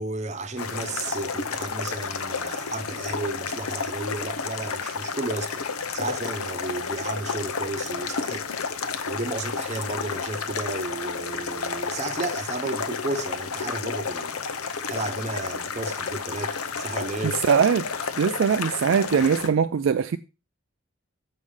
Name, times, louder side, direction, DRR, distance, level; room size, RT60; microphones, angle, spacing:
voice 1, 0.0-5.6 5.9-8.5 9.1-17.4, right 2 dB, 30° right, 0.8 m, -33 dB
sound 1, 0.6-19.5, left 5 dB, 90° left, 0.8 m, -31 dB
voice 2, 17.2-17.9 18.2-20.2, right 6 dB, 60° right, 0.3 m, -21 dB
7.6 x 5.6 x 4.9 m
head